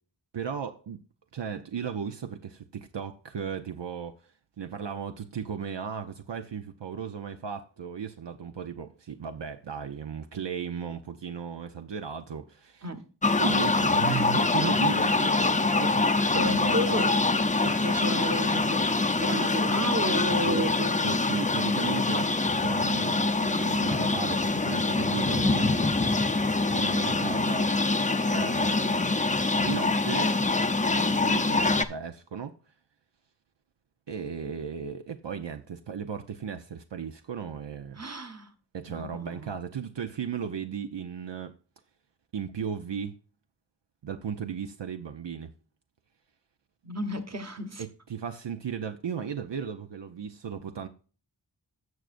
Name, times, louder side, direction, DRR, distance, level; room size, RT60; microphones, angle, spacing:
voice 1, 0.3-1.0 1.3-12.8 13.4-17.0 20.3-20.7 21.0-22.3 22.6-25.9 26.7-27.7 28.3-29.1 29.6-30.4 30.8-32.5 34.1-38.0 38.7-41.5 42.3-43.1 44.0-45.5 47.8-50.9, right 7 dB, 70° right, 0.7 m, -36 dB
sound 1, 13.2-31.8, left 3 dB, 15° left, 0.6 m, -25 dB
voice 2, 16.3-17.1 17.6-20.9 27.1-27.4 38.0-38.5 38.9-39.5 46.8-47.8, equal, 35° right, 1.2 m, -33 dB
16.0 x 6.3 x 2.5 m
wide cardioid pair, 70°, 44 cm